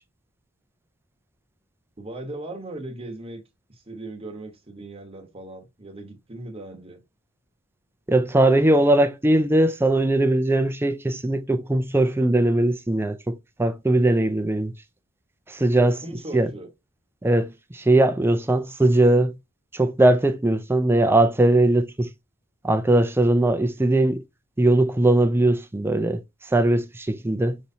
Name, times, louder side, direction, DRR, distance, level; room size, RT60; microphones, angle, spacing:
voice 1, 2.0-3.4 3.7-7.0 16.0-16.7, right 2 dB, 30° right, 1.0 m, -38 dB
voice 2, 8.1-14.7 15.5-16.0 16.3-16.5 17.2-19.4 19.7-22.1 22.6-24.2 24.6-26.2 26.5-27.6, right 1 dB, 10° right, 0.4 m, -20 dB
5.4 x 3.1 x 2.7 m
head